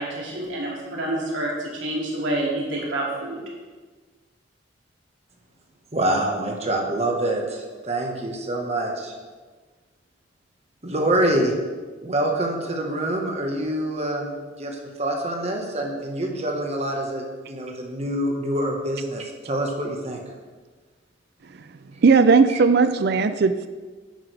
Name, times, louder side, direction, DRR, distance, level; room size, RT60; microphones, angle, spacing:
voice 1, 0.0-3.4, right 1 dB, 80° right, -4 dB, 2.6 m, -28 dB
voice 2, 5.9-9.1 10.8-11.6 12.0-20.2 22.5-22.6, right 1 dB, 35° right, 1 dB, 1.4 m, -26 dB
voice 3, 22.0-23.7, right 4 dB, 55° right, 10 dB, 0.4 m, -17 dB
10.5 x 8.9 x 3.4 m, 1.4 s
head